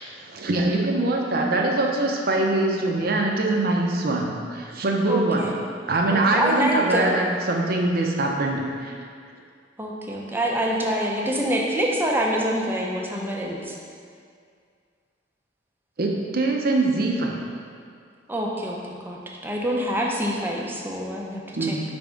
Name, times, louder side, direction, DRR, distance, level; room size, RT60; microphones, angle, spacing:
voice 1, 0.2-5.5 5.9-8.9 16.0-17.4 21.6-21.8, right 2 dB, 55° right, 0 dB, 0.7 m, -23 dB
voice 2, 5.1-5.6 6.1-7.2 9.8-13.8 18.3-18.8 19.0-21.8, equal, 10° right, -2 dB, 0.6 m, -26 dB
5.3 x 3.5 x 5.1 m, 2.2 s
head